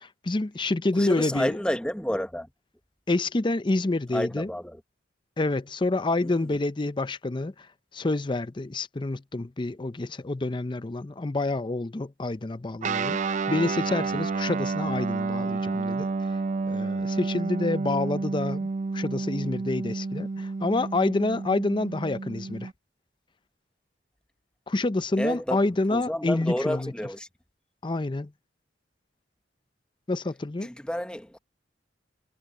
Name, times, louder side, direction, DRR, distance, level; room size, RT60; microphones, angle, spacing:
voice 1, 0.0-1.5 3.1-4.5 5.4-7.5 7.9-16.1 16.7-18.7 18.9-22.7 24.7-26.9 27.8-28.3 30.1-30.7, left 2 dB, 25° left, 0.6 m, -28 dB
voice 2, 0.9-2.5 4.1-4.8 6.2-6.5 25.2-27.3 30.6-31.4, equal, 5° left, 0.9 m, -30 dB
Guitar, 12.8-22.7, right 4 dB, 40° right, 0.4 m, -30 dB
head